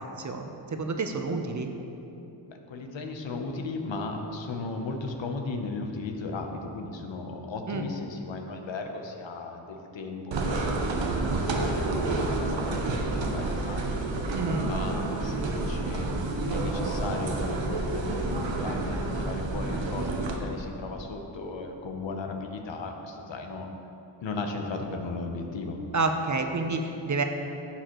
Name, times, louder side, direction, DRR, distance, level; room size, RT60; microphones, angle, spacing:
voice 1, 0.0-1.7 7.7-7.9 14.3-14.7 25.9-27.2, right 3 dB, 40° right, 5 dB, 0.8 m, -29 dB
voice 2, 2.5-14.0 14.6-16.1 16.4-23.7 24.2-25.8, left 3 dB, 90° left, 3 dB, 0.9 m, -36 dB
sound 1, 10.3-20.4, right 2 dB, 90° right, 0.9 m, -29 dB
11.0 x 7.0 x 3.1 m, 2.8 s
wide cardioid pair, 70°, 44 cm